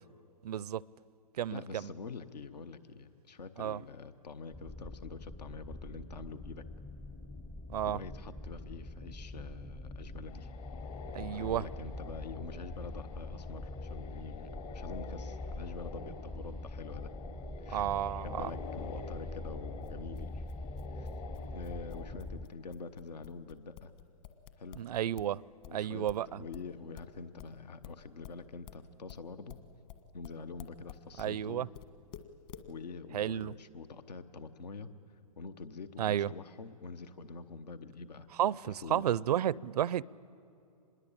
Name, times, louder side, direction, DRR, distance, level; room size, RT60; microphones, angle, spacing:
voice 1, 0.4-0.8 1.4-1.9 3.6-3.8 7.7-8.0 11.1-11.6 17.7-18.5 24.8-25.4 25.7-26.4 31.2-31.7 33.1-33.5 36.0-36.3 38.4-40.0, right 11 dB, 75° right, 0.5 m, -32 dB
voice 2, 1.5-6.7 7.9-10.5 11.3-17.1 17.6-17.9 18.2-20.4 20.9-21.1 21.5-23.9 24.6-24.8 25.7-29.6 30.1-31.7 32.7-34.9 35.4-38.3 38.6-39.1, left 4 dB, 85° left, 1.1 m, -46 dB
sound 1, 4.5-22.5, left 2 dB, 10° left, 0.5 m, -43 dB
sound 2, 10.3-22.0, left 5 dB, 65° left, 4.1 m, -49 dB
sound 3, 19.8-25.4 25.6-31.4 31.7-32.7, left 11 dB, 45° left, 1.6 m, -51 dB
26.0 x 21.0 x 8.8 m
hypercardioid pair, 130°, 20 cm